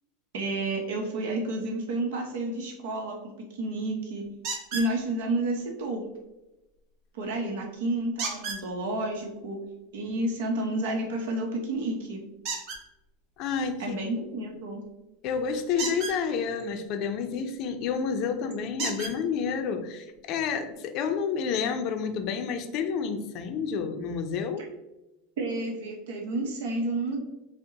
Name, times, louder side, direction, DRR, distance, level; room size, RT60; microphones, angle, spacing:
voice 1, 0.3-3.2 3.5-4.2 4.7-6.0 7.1-9.6 9.9-12.2 13.8-14.8 25.4-27.2, right 2 dB, 80° right, 0 dB, 0.8 m, -30 dB
sound 1, 4.4-4.9 8.2-8.6 12.4-12.8 15.7-16.2 17.8-17.9 18.8-19.1 20.1-20.2 20.7-20.8, right 4 dB, 55° right, 1.3 m, -32 dB
voice 2, 13.4-14.0 15.2-24.7, left 6 dB, 45° left, 8 dB, 0.5 m, -29 dB
5.1 x 2.1 x 3.9 m, 0.98 s
supercardioid pair, 140°, 0 cm